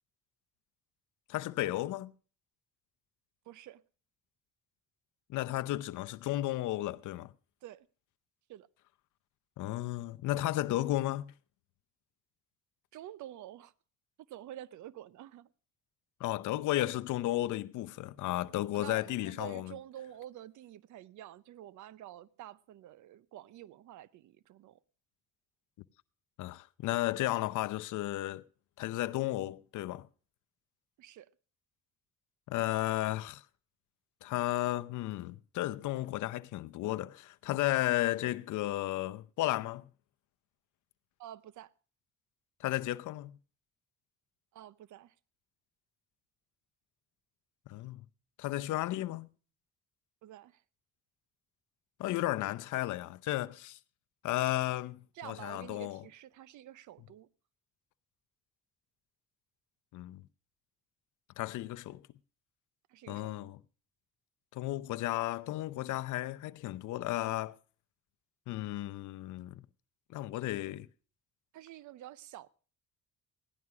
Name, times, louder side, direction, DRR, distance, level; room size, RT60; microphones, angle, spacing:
voice 1, 1.3-2.1 5.3-7.3 9.6-11.3 16.2-19.7 26.4-28.4 28.8-30.1 32.5-33.4 34.2-39.9 42.6-43.4 47.7-48.0 48.4-49.3 52.0-53.8 54.2-56.0 59.9-60.2 61.4-62.0 63.1-63.6 64.5-67.6 68.5-69.6 70.1-70.9, left 16 dB, 80° left, 0.6 m, -33 dB
voice 2, 3.5-3.8 7.6-7.9 8.5-8.7 12.9-13.7 14.3-15.5 18.7-24.8 31.0-31.3 41.2-41.7 44.5-45.2 50.2-50.6 55.1-57.3 62.9-63.5 71.5-72.5, right 12 dB, 75° right, 0.6 m, -49 dB
16.0 x 11.0 x 4.7 m
cardioid pair, 90°, 30 cm